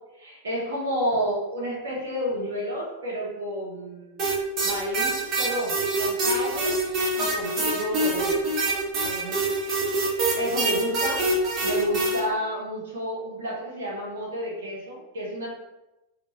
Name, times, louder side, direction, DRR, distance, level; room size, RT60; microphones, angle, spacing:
voice 1, 0.2-4.2 4.6-6.7 7.2-8.4 9.0-9.4 10.4-15.5, equal, 65° right, -4 dB, 0.7 m, -30 dB
sound 1, 4.2-12.2, right 2 dB, 35° right, 0.7 m, -25 dB
2.2 x 2.1 x 2.9 m, 0.98 s
figure-of-eight pair, 90°, 0 cm